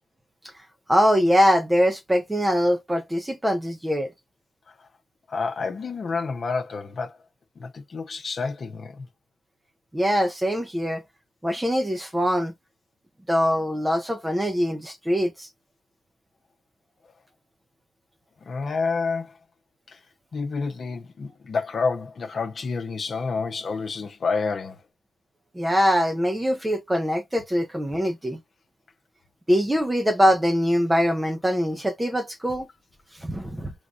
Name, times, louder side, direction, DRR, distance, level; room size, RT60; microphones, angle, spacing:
voice 1, 0.9-4.1 9.9-11.0 11.4-12.5 13.3-15.5 25.5-28.4 29.5-32.7 33.2-33.7, equal, 10° right, 0.9 m, -23 dB
voice 2, 5.3-7.2 7.6-9.1 18.4-19.3 19.9-20.0 20.3-24.8, left 4 dB, 45° left, 1.0 m, -29 dB
4.9 x 3.5 x 2.7 m
cardioid pair, 90°, 0 cm